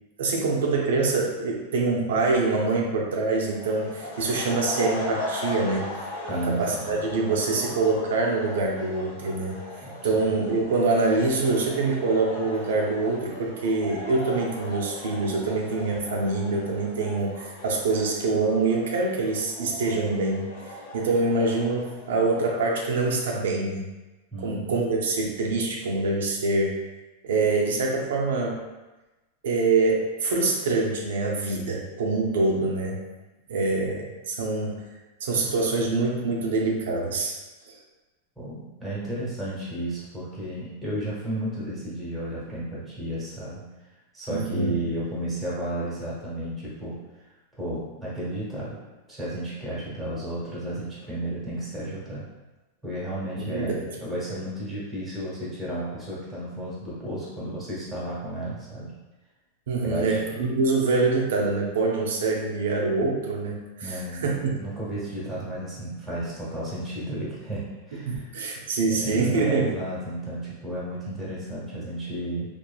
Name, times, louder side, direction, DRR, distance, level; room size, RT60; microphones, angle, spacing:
voice 1, 0.2-5.9 6.3-9.6 10.0-23.9 24.4-26.8 27.2-28.6 29.4-33.0 33.5-34.8 35.2-37.3 37.6-37.8 44.3-44.8 53.4-53.9 59.7-64.5 68.0-69.8, right 3 dB, 85° right, -1 dB, 0.5 m, -25 dB
sound 1, 3.5-22.8, left 1 dB, 85° left, 1.1 m, -38 dB
voice 2, 6.3-7.0 9.8-9.9 10.2-10.3 24.3-24.8 33.8-33.9 38.4-43.6 44.1-47.0 47.6-48.8 49.1-52.2 52.8-53.8 54.0-58.9 59.8-60.4 63.8-64.3 64.6-68.3 68.9-72.5, right 1 dB, 5° right, -8 dB, 1.0 m, -33 dB
2.9 x 2.4 x 2.3 m, 1.1 s
supercardioid pair, 150°, 0 cm